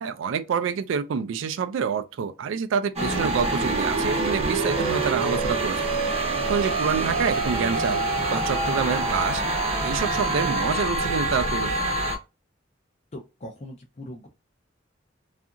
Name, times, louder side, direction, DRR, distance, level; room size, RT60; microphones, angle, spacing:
voice 1, 0.0-5.9 6.5-8.0 8.3-9.4 9.8-11.9, right 6 dB, 70° right, 0.3 m, -27 dB
sound 1, 3.0-12.2, right 2 dB, 35° right, 0.7 m, -25 dB
voice 2, 13.1-14.3, left 1 dB, 35° left, 0.5 m, -40 dB
2.7 x 2.4 x 2.3 m
head